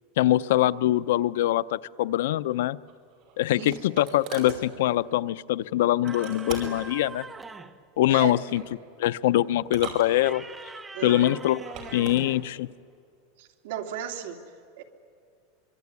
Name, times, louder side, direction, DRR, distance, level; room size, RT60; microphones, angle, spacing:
voice 1, 0.2-2.8 3.4-7.3 8.0-8.6 9.0-10.4 11.0-11.6 11.9-12.7, left 14 dB, 70° left, 16 dB, 0.6 m, -23 dB
sound 1, 2.9-4.6 6.1-6.9 8.2-8.7 9.6-10.6 11.5-12.2, right 5 dB, 35° right, 5.2 m, -40 dB
sound 2, 6.0-7.9 10.0-12.5, right 3 dB, 10° right, 0.8 m, -42 dB
voice 2, 8.1-8.4 10.9-11.3 13.4-14.8, right 9 dB, 60° right, 3 dB, 2.9 m, -35 dB
25.0 x 24.0 x 9.6 m, 2.3 s
supercardioid pair, 175°, 0 cm